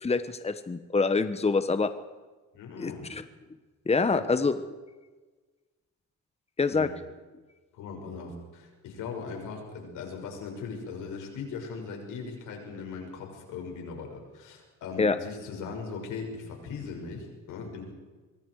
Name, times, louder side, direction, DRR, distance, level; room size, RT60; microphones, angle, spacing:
voice 1, 0.0-1.9 2.8-3.2 3.9-4.6 6.6-6.9 15.0-15.2, left 4 dB, 20° left, 11 dB, 1.3 m, -25 dB
voice 2, 2.5-3.1 4.1-4.3 6.7-6.9 7.7-17.9, left 5 dB, 90° left, 2 dB, 6.3 m, -39 dB
25.0 x 23.5 x 4.9 m, 1.3 s
cardioid pair, 90°, 30 cm